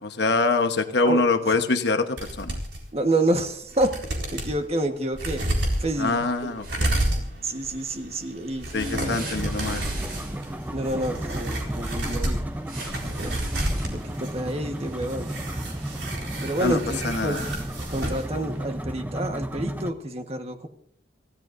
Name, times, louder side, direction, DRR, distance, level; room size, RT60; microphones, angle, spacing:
voice 1, 0.0-2.6 6.0-7.3 8.7-9.8 16.6-16.8 17.0-17.4, left 3 dB, 65° left, 7 dB, 1.1 m, -25 dB
sound 1, 2.2-2.8 3.3-3.4 3.7-4.5 5.1-18.3 18.6-18.7, right 1 dB, 70° right, 4.1 m, -31 dB
voice 2, 2.9-4.0 4.3-5.5 5.8-6.5 7.4-9.3 10.7-12.4 13.1-13.4 13.9-15.3 16.4-17.4 17.9-20.7, right 1 dB, 35° right, 6 dB, 1.3 m, -28 dB
sound 2, 6.6-7.0 8.6-10.5 12.7-13.9, right 3 dB, 55° right, 7.4 m, -40 dB
sound 3, 8.9-19.9, right 1 dB, 10° right, 0.7 m, -34 dB
25.0 x 16.0 x 2.6 m, 0.64 s
head